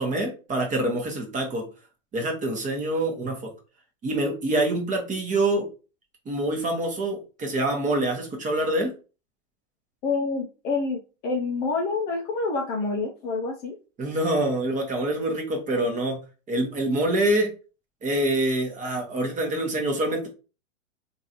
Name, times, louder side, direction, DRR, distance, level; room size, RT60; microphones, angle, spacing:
voice 1, 0.0-1.6 2.1-3.5 4.0-5.7 6.3-8.9 14.0-16.2 16.5-17.5 18.0-20.3, right 1 dB, 20° right, 2 dB, 1.0 m, -25 dB
voice 2, 10.0-13.8, left 3 dB, 25° left, 0 dB, 0.4 m, -27 dB
3.0 x 2.6 x 2.8 m, 0.34 s
hypercardioid pair, 115°, 39 cm